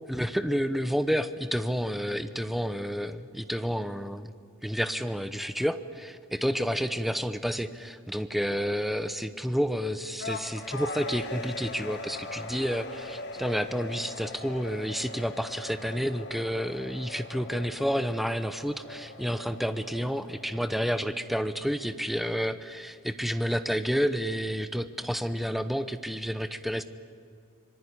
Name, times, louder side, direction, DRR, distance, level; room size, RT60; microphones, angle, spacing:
voice 1, 0.1-4.3 4.6-26.8, equal, ahead, 11 dB, 0.8 m, -30 dB
sound 1, 10.2-21.0, left 3 dB, 50° left, 1.6 m, -41 dB
25.5 x 20.5 x 9.9 m, 2.5 s
head